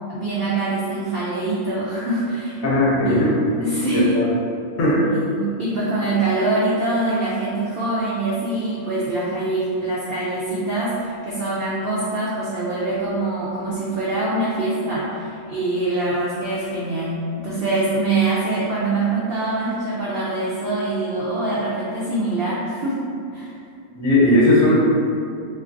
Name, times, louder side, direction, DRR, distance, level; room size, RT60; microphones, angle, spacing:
voice 1, 0.1-3.3 3.6-4.2 5.0-17.2 17.4-23.0 23.3-23.5, right 2 dB, 75° right, -7 dB, 0.5 m, -24 dB
voice 2, 2.6-3.3 3.9-4.3 4.8-5.0 23.9-24.7, left 1 dB, 70° left, -5 dB, 1.1 m, -17 dB
3.4 x 2.5 x 2.5 m, 2.4 s
omnidirectional pair, 1.5 m